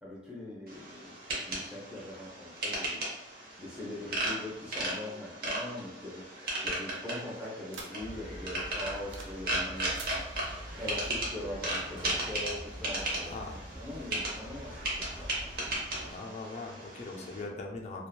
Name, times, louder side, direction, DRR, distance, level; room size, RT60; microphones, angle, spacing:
voice 1, 0.0-1.1 1.4-3.0 3.6-13.3 13.7-15.5 17.1-17.4, left 1 dB, 5° right, -6 dB, 0.7 m, -42 dB
sound 1, 0.7-17.4, right 1 dB, 50° right, 0.7 m, -36 dB
sound 2, 5.8-8.3 8.7-9.5 9.7-10.2, right 3 dB, 85° right, 0.5 m, -48 dB
sound 3, 8.0-16.2, equal, 30° right, 1.1 m, -46 dB
voice 2, 13.2-13.6 16.0-18.1, left 3 dB, 35° left, 1 dB, 0.3 m, -41 dB
2.8 x 2.2 x 2.3 m, 0.92 s
head